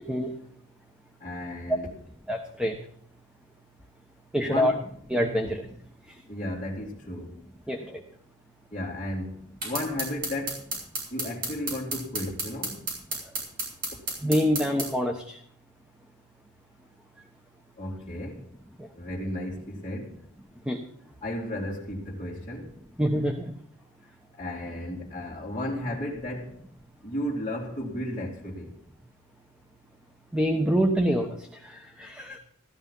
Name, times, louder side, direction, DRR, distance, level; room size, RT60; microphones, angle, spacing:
voice 1, 1.2-2.0 4.4-4.8 6.3-7.4 8.7-10.6 11.1-12.8 17.8-18.5 19.0-20.2 21.2-22.7 24.0-24.1 24.4-26.5 27.0-28.7, left 1 dB, 25° left, 2.6 m, -34 dB
voice 2, 2.3-2.8 4.3-4.7 5.1-5.7 7.7-8.0 14.2-15.3 20.7-20.8 23.0-23.5 30.3-31.3 32.0-32.4, equal, 5° right, 1.1 m, -25 dB
sound 1, 9.6-14.9, right 2 dB, 40° right, 7.4 m, -32 dB
15.5 x 13.5 x 5.5 m
head